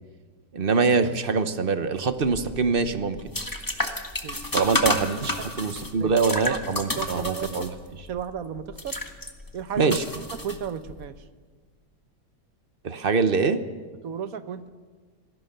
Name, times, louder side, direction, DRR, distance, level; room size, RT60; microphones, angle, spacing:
voice 1, 0.5-3.2 4.5-7.7 9.8-10.0 12.8-13.6, right 4 dB, 40° right, 10 dB, 1.0 m, -24 dB
sound 1, 2.2-11.0, left 1 dB, 10° left, 1.4 m, -31 dB
voice 2, 7.0-7.7 8.1-8.9 9.5-10.0 10.4-11.1 14.0-14.7, right 8 dB, 55° right, 11 dB, 1.3 m, -33 dB
26.5 x 17.5 x 6.7 m, 1.5 s
omnidirectional pair, 1.9 m